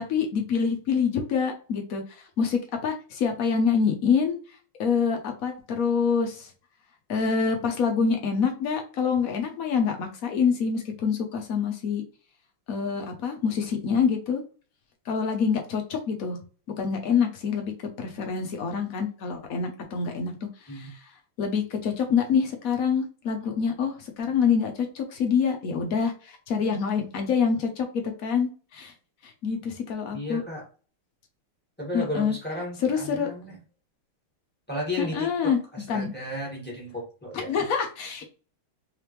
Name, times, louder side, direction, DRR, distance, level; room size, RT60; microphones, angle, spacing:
voice 1, 0.0-4.4 4.8-6.5 7.1-12.0 12.7-14.4 15.1-16.4 16.8-17.7 18.0-20.4 20.6-21.1 21.4-28.9 29.2-30.4 31.9-32.3 32.8-33.3 35.0-35.6 35.9-36.1 37.5-38.2, left 6 dB, 70° left, 4 dB, 0.8 m, -26 dB
voice 2, 30.1-30.6 31.8-33.6 34.7-37.7, left 1 dB, 5° left, -3 dB, 1.3 m, -34 dB
3.7 x 3.4 x 3.0 m, 0.37 s
omnidirectional pair, 2.4 m